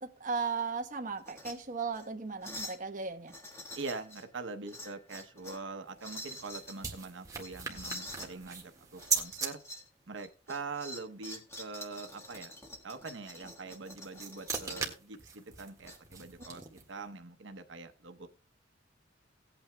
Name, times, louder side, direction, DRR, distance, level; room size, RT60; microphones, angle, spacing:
voice 1, 0.0-3.3, right 5 dB, 45° right, 1.1 m, -36 dB
sound 1, 1.2-1.5 1.9-2.1 2.4-2.8 3.3-4.2 4.7-5.6 6.0-6.8 7.4-8.3 9.0-9.9 10.2-14.9 15.8-16.5, left 1 dB, 15° left, 1.5 m, -46 dB
voice 2, 3.7-9.6 10.1-12.5 12.8-18.3, right 3 dB, 90° right, 0.9 m, -43 dB
sound 2, 5.9-9.5 13.7-17.0, right 6 dB, 20° right, 1.6 m, -39 dB
18.5 x 8.7 x 2.2 m
head